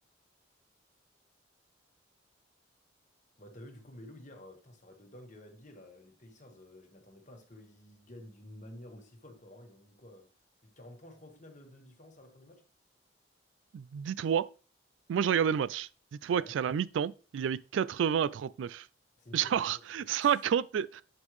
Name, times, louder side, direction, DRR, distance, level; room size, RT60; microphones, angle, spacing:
voice 1, 3.4-10.3 10.6-12.6 16.3-16.6 19.2-20.3, left 1 dB, 40° left, 1.4 m, -52 dB
voice 2, 13.7-14.5 15.1-18.9 19.3-21.0, right 8 dB, 75° right, 0.3 m, -30 dB
8.0 x 5.3 x 3.2 m
head